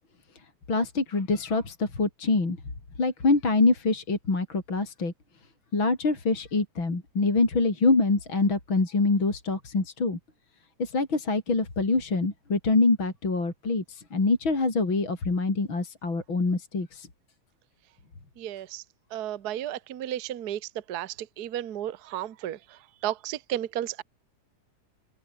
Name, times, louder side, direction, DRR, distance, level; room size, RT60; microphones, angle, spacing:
voice 1, 0.7-2.6 3.0-5.1 5.7-10.2 10.8-17.1, left 3 dB, 40° left, 5.6 m, -25 dB
voice 2, 18.4-18.8 19.1-20.6 20.9-22.6 23.0-24.0, right 12 dB, 60° right, 1.0 m, -33 dB
open air
omnidirectional pair, 3.4 m